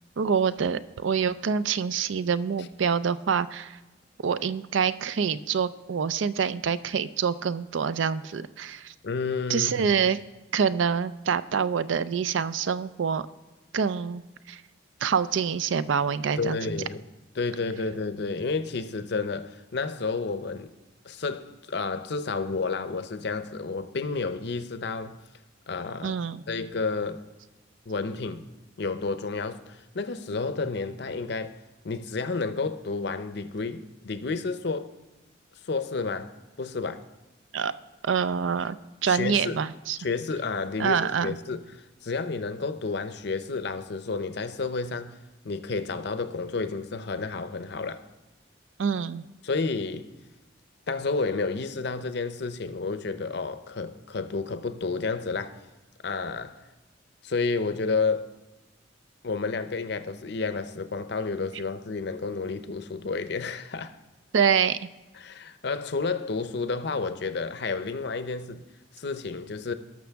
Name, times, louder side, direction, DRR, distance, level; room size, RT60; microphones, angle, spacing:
voice 1, 0.2-3.8 4.2-8.9 9.5-10.2 10.5-13.3 13.7-14.6 15.0-16.6 26.0-26.4 37.5-37.7 38.0-38.8 39.0-40.0 40.8-41.3 48.8-49.2 64.3-64.9, right 6 dB, 75° right, 0.4 m, -26 dB
voice 2, 9.0-10.0 16.4-17.0 17.4-20.7 21.0-25.2 25.7-26.2 26.5-27.2 27.9-28.4 28.8-31.6 31.8-34.9 35.6-37.0 39.1-39.6 40.0-45.2 45.4-48.0 49.4-50.1 50.9-55.6 56.0-56.6 57.2-58.3 59.2-64.0 65.1-68.7 69.0-69.7, left 4 dB, 60° left, 0.6 m, -31 dB
18.5 x 6.2 x 3.5 m
head